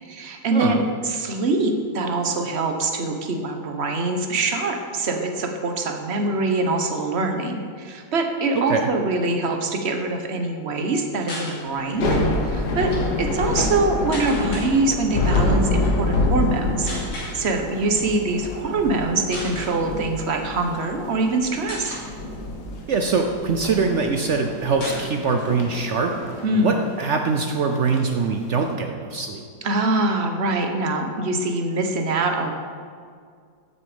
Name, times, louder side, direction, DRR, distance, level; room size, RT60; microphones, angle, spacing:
voice 1, 0.0-16.9 17.3-22.0 26.4-26.8 29.6-32.5, right 2 dB, 45° right, 4 dB, 1.1 m, -24 dB
voice 2, 8.5-8.9 22.9-26.1 26.5-29.4, right 4 dB, 75° right, 4 dB, 0.6 m, -23 dB
sound 1, 11.2-11.6 12.7-13.0 14.1-14.7 15.7-15.9 16.9-17.4 18.4-18.6 18.9-19.0 19.3-19.7 20.6-21.2 21.7-22.1 22.7-23.7 24.0-24.1 24.3-24.4 24.8-25.5 25.9-26.0 26.3-27.3, left 1 dB, 75° left, 3.6 m, -36 dB
Thunder / Rain, 11.8-25.0, left 2 dB, 60° left, 1.8 m, -26 dB
sound 2, 19.4-20.9 21.2-21.3 22.7-28.8, left 1 dB, 40° left, 1.1 m, -39 dB
12.5 x 7.1 x 5.1 m, 2.1 s
omnidirectional pair, 2.0 m